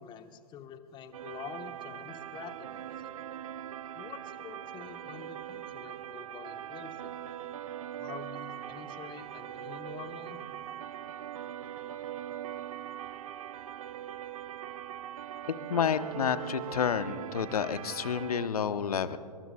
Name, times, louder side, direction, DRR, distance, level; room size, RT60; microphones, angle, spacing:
voice 1, 0.0-3.1 3.9-7.2 8.0-10.4, left 8 dB, 20° left, 8 dB, 1.1 m, -47 dB
sound 1, 1.1-18.5, right 11 dB, 60° right, 0.6 m, -41 dB
voice 2, 15.7-19.2, left 7 dB, 65° left, 12 dB, 0.9 m, -30 dB
25.5 x 22.5 x 2.3 m, 2.5 s
figure-of-eight pair, 110°, 20 cm